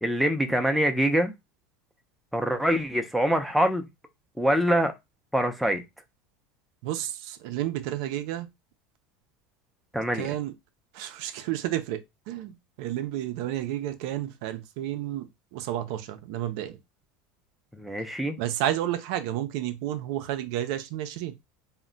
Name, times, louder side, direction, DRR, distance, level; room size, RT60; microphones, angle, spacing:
voice 1, 0.0-1.3 2.3-3.8 4.4-4.9 5.3-5.8 9.9-10.3 17.7-18.4, equal, ahead, 0.4 m, -24 dB
voice 2, 6.8-8.5 10.1-10.5 10.9-15.3 15.5-16.8 18.4-21.3, right 12 dB, 75° right, 0.4 m, -31 dB
2.1 x 2.1 x 3.8 m
supercardioid pair, 125°, 3 cm